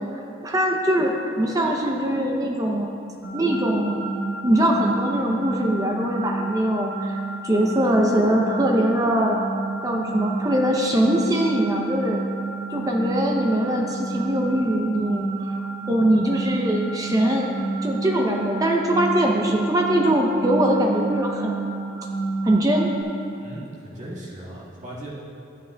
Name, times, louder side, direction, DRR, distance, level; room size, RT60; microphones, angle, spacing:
voice 1, 0.1-2.9 3.3-4.1 4.4-9.4 9.8-12.2 12.7-17.5 17.8-21.6 22.4-22.9, right 1 dB, 15° right, 1 dB, 0.5 m, -22 dB
sound 1, 3.2-23.0, right 3 dB, 70° left, 2.2 m, -30 dB
voice 2, 23.4-25.1, right 1 dB, 35° right, -7 dB, 1.7 m, -37 dB
12.5 x 9.1 x 2.2 m, 2.6 s
head